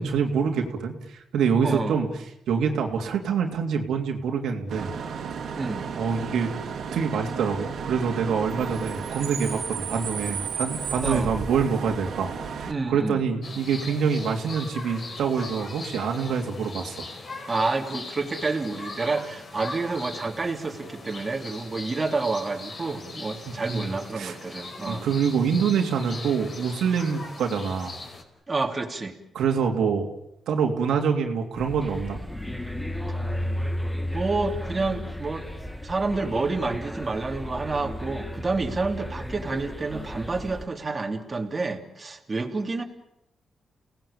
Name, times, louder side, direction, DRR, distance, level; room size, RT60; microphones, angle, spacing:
voice 1, 0.0-2.1 2.5-4.9 6.0-6.5 6.9-17.1 23.4-24.4 24.9-28.0 29.3-30.1 30.5-32.2, right 6 dB, 90° right, 2 dB, 3.1 m, -26 dB
voice 2, 1.6-2.0 5.6-5.9 11.0-11.3 12.7-13.2 17.5-25.1 28.5-29.1 34.1-35.5 35.8-42.8, right 3 dB, 30° right, 2 dB, 3.0 m, -29 dB
Bus / Idling / Screech, 4.7-12.7, right 6 dB, 70° right, 3.1 m, -33 dB
sound 1, 13.4-28.2, left 3 dB, 45° left, 5.0 m, -40 dB
sound 2, 31.6-40.7, left 1 dB, 5° left, 2.1 m, -33 dB
30.0 x 18.5 x 8.8 m, 0.83 s
cardioid pair, 95°, 0 cm